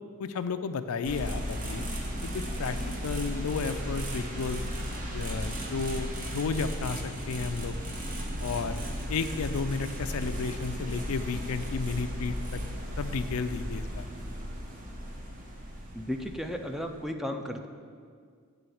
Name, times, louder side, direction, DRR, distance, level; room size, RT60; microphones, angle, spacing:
voice 1, 0.2-1.9 2.2-2.8 3.0-4.6 5.1-7.8 8.4-8.8 9.1-12.6 13.0-14.1, left 5 dB, 80° left, 10 dB, 0.4 m, -33 dB
sound 1, 1.0-17.1, equal, 40° right, 1.0 m, -35 dB
voice 2, 15.9-17.7, equal, ahead, 4 dB, 0.4 m, -34 dB
8.9 x 3.8 x 7.0 m, 2.1 s
head